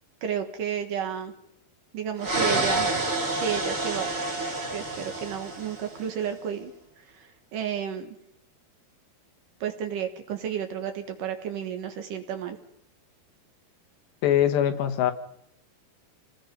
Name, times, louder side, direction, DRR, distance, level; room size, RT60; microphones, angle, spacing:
voice 1, 0.2-1.3 1.9-2.9 3.3-4.1 4.7-6.7 7.1-8.2 9.6-12.6, right 8 dB, 60° right, 7 dB, 2.8 m, -32 dB
sound 1, 2.2-6.1, right 2 dB, 25° right, 2.3 m, -28 dB
voice 2, 14.2-15.1, left 11 dB, 90° left, 8 dB, 3.6 m, -22 dB
28.5 x 19.0 x 5.4 m, 0.77 s
omnidirectional pair, 4.7 m